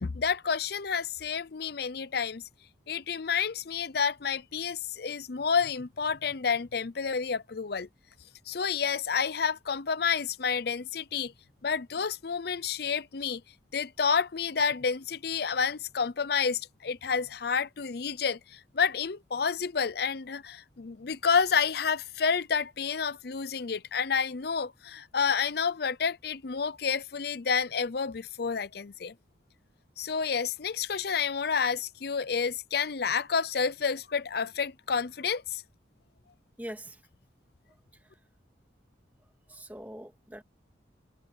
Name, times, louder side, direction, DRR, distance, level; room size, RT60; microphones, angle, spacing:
voice 1, 0.0-2.4 2.9-7.9 8.5-11.3 11.6-13.4 13.7-29.1 30.0-35.6, left 6 dB, 55° left, 0.6 m, -29 dB
voice 2, 36.6-37.0 39.5-40.4, equal, 10° right, 2.0 m, -42 dB
head